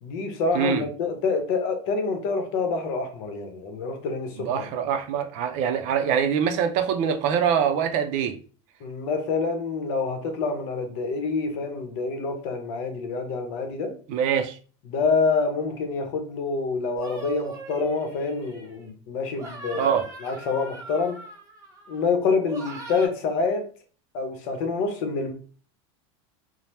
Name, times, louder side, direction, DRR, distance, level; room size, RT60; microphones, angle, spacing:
voice 1, 0.0-4.7 8.8-13.9 14.9-19.9 20.2-21.2 21.9-23.6 24.1-25.3, left 4 dB, 65° left, 0.8 m, -27 dB
voice 2, 0.5-0.8 4.4-8.4 14.1-14.6 19.7-20.1, right 8 dB, 55° right, 0.4 m, -24 dB
sound 1, 17.0-18.9 19.3-22.0 22.5-23.1, right 3 dB, 20° right, 0.8 m, -40 dB
2.8 x 2.0 x 3.2 m
supercardioid pair, 140°, 15 cm